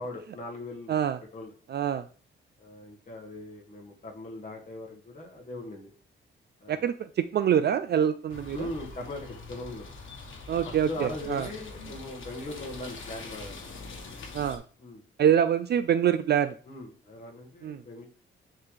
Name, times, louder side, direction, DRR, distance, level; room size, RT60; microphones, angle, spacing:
voice 1, 0.0-1.0 1.3-1.5 2.6-5.9 6.6-6.8 8.5-9.9 10.6-13.6 14.8-15.0 16.6-18.1, left 2 dB, 35° left, -1 dB, 1.6 m, -40 dB
voice 2, 0.9-1.2 1.7-2.0 6.7-8.7 10.5-11.5 14.3-14.6 15.2-16.5 17.6-17.8, right 9 dB, 50° right, 11 dB, 0.4 m, -25 dB
sound 1, 8.3-14.6, left 3 dB, 65° left, 1.5 m, -43 dB
9.5 x 3.9 x 3.3 m, 0.41 s
wide cardioid pair, 125°, 21 cm